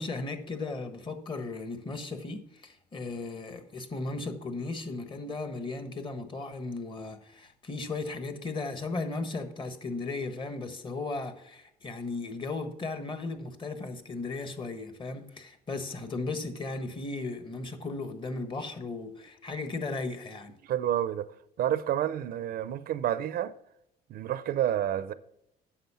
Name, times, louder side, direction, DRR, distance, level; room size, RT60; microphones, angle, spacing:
voice 1, 0.0-20.5, left 3 dB, 30° left, 1.3 m, -36 dB
voice 2, 20.6-23.5 24.1-25.1, right 11 dB, 65° right, 0.6 m, -29 dB
9.4 x 6.6 x 5.6 m
cardioid pair, 110°, 17 cm